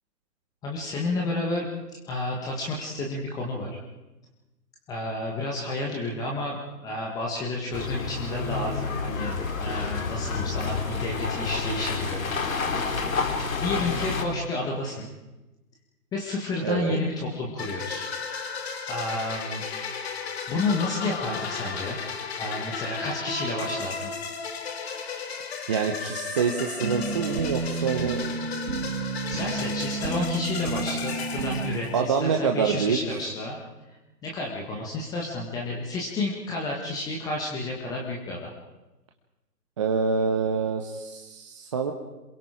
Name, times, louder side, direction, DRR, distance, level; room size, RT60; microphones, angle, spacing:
voice 1, 0.6-1.7 2.1-3.8 4.9-12.7 13.6-15.1 16.1-18.1 18.9-19.7 20.5-22.0 22.4-24.1 29.3-33.6 34.2-38.5, left 2 dB, 10° left, -1 dB, 1.5 m, -31 dB
sound 1, 7.7-14.2, left 4 dB, 55° left, 3.8 m, -29 dB
voice 2, 16.6-17.0 25.7-28.3 31.9-33.0 39.8-41.9, right 6 dB, 20° right, 3 dB, 0.9 m, -26 dB
sound 2, 17.6-32.4, left 5 dB, 40° left, 3.1 m, -35 dB
sound 3, 26.8-31.8, right 4 dB, 70° right, 2.9 m, -31 dB
27.5 x 22.0 x 5.0 m, 1.1 s
figure-of-eight pair, 150°, 48 cm